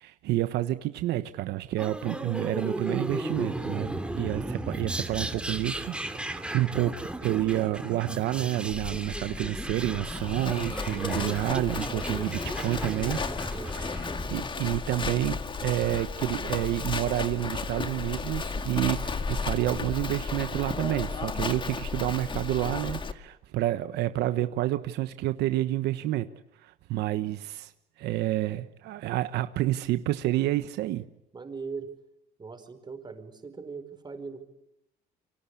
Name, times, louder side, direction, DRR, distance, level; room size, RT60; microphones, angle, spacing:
voice 1, 0.0-26.3 26.6-27.7 28.0-31.1, right 15 dB, 80° right, 10 dB, 1.2 m, -29 dB
sound 1, 1.8-14.5, right 1 dB, 5° right, 2.7 m, -35 dB
Livestock farm animals working animals, 8.7-23.1, left 4 dB, 30° left, 2.0 m, -34 dB
voice 2, 31.3-31.9 32.4-34.4, right 4 dB, 25° right, 8 dB, 4.9 m, -40 dB
28.5 x 25.0 x 8.4 m, 0.84 s
cardioid pair, 110°, 17 cm